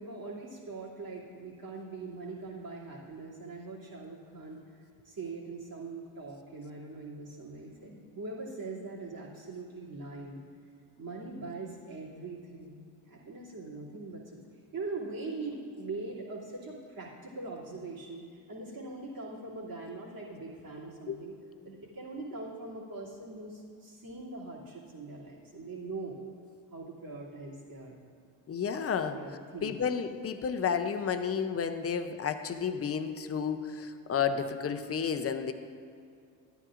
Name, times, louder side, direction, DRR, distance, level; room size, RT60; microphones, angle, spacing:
voice 1, 0.0-4.6 5.0-10.4 11.0-14.4 14.7-21.3 21.6-26.2 26.7-28.0 29.1-29.8, right 3 dB, 45° right, -6 dB, 2.7 m, -42 dB
voice 2, 28.5-29.2 29.6-35.5, left 7 dB, 30° left, 8 dB, 0.6 m, -31 dB
13.0 x 9.8 x 2.5 m, 2.3 s
supercardioid pair, 80°, 47 cm